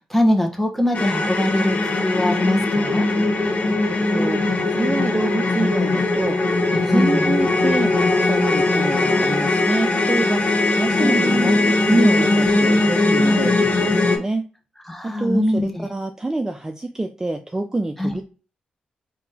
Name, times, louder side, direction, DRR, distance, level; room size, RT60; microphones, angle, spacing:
voice 1, 0.0-3.1 6.9-7.3 11.0-11.7 12.4-12.6 14.9-15.8 18.0-18.1, left 1 dB, 5° left, 3 dB, 1.2 m, -22 dB
sound 1, 0.9-14.2, left 2 dB, 50° left, 1.0 m, -20 dB
voice 2, 4.1-6.4 6.7-11.6 11.9-14.5 15.0-18.2, right 2 dB, 20° right, 6 dB, 0.4 m, -26 dB
4.1 x 2.7 x 3.4 m, 0.36 s
supercardioid pair, 45°, 3 cm